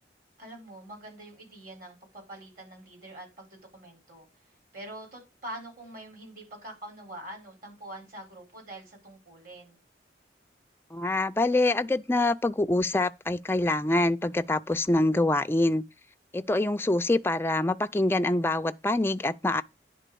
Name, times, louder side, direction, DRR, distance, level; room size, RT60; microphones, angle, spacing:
voice 1, 0.4-4.3 4.7-9.8, right 1 dB, 50° right, 4.8 m, -44 dB
voice 2, 10.9-15.8 16.3-19.6, left 2 dB, 15° left, 0.4 m, -25 dB
10.0 x 3.9 x 6.8 m
head